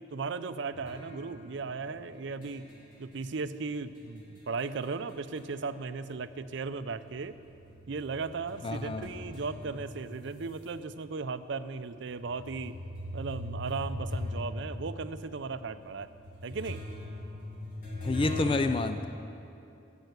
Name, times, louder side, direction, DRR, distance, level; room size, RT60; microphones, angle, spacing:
voice 1, 0.0-2.7 3.0-7.4 7.9-12.8 13.1-16.1 16.4-16.8, right 4 dB, 65° right, 12 dB, 0.5 m, -36 dB
sound 1, 0.7-5.7 6.0-10.7 11.3-11.4 12.1-18.5, left 1 dB, 45° left, 3.3 m, -41 dB
voice 2, 8.6-9.1 18.0-19.1, left 3 dB, 25° left, 9 dB, 0.4 m, -29 dB
16.5 x 7.9 x 8.1 m, 2.7 s
head